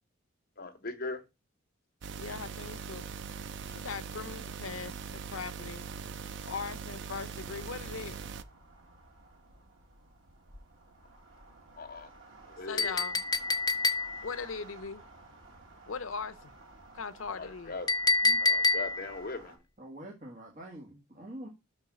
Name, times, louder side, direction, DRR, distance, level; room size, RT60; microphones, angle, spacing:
voice 1, 0.6-1.2 11.8-12.1 12.6-13.0 17.3-17.9 18.4-19.6, left 3 dB, 50° left, 1.3 m, -39 dB
sound 1, 2.0-8.4, right 5 dB, 60° right, 0.5 m, -41 dB
voice 2, 2.2-3.3 3.7-5.9 6.4-8.2 12.6-13.2 14.2-15.0 15.9-16.5 16.9-17.8, left 5 dB, 85° left, 0.7 m, -40 dB
sound 2, 7.1-19.6, right 2 dB, 75° right, 2.4 m, -54 dB
Chink clink, 12.8-14.4 17.9-19.2, left 3 dB, 20° left, 0.6 m, -27 dB
voice 3, 19.8-21.5, right 1 dB, 40° right, 1.8 m, -45 dB
6.3 x 4.4 x 6.0 m
head